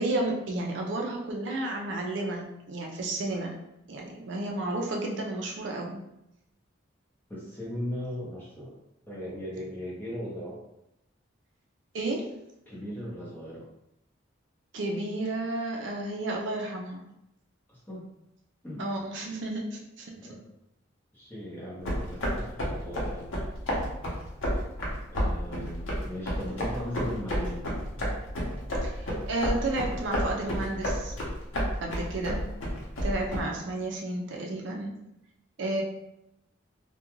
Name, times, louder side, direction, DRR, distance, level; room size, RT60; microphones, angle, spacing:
voice 1, 0.0-3.5 3.9-6.0 11.9-12.3 14.7-17.0 18.8-20.1 28.8-31.1 31.8-32.4 33.0-35.0 35.6-35.8, right 2 dB, 65° right, 1 dB, 0.4 m, -32 dB
voice 2, 7.3-8.8 9.1-10.6 12.7-13.7 17.7-18.0 18.6-18.9 20.1-20.4 21.1-23.3 25.1-27.6, equal, 10° left, -7 dB, 0.7 m, -38 dB
sound 1, 21.8-33.4, equal, 80° left, 0.8 m, -31 dB
2.3 x 2.2 x 3.0 m, 0.85 s
head